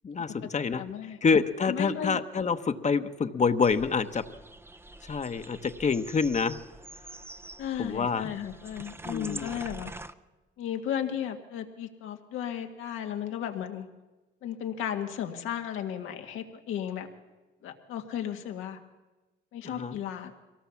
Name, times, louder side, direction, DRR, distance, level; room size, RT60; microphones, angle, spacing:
voice 1, 0.0-4.2 5.0-6.6 7.8-8.3 9.0-9.5 19.6-20.0, left 5 dB, 35° left, 10 dB, 1.1 m, -27 dB
voice 2, 0.8-1.2 1.7-2.1 7.6-9.9 10.6-13.9 14.4-17.1 17.6-18.8 19.5-20.3, left 9 dB, 90° left, 5 dB, 1.8 m, -34 dB
sound 1, 3.6-10.1, right 2 dB, 10° right, 0.6 m, -45 dB
23.0 x 17.5 x 7.2 m, 1.2 s
cardioid pair, 90°, 20 cm